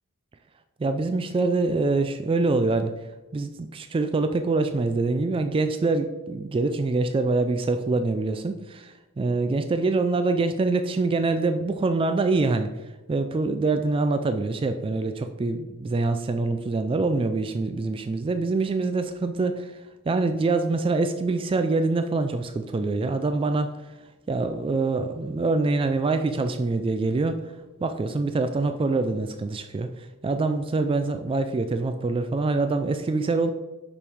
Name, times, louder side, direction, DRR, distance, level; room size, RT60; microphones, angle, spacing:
voice 1, 0.8-2.9 3.3-12.7 13.1-19.7 20.1-23.7 24.3-27.4 27.8-33.5, right 3 dB, 25° right, 8 dB, 0.3 m, -25 dB
6.2 x 5.7 x 3.5 m, 1.1 s
head